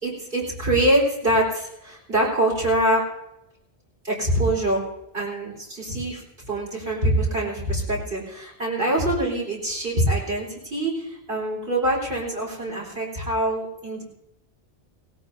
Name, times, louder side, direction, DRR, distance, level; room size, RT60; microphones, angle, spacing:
voice 1, 0.0-3.0 4.0-4.8 5.1-14.0, right 1 dB, 55° right, -4 dB, 4.7 m, -24 dB
18.5 x 17.5 x 2.8 m, 0.86 s
omnidirectional pair, 1.1 m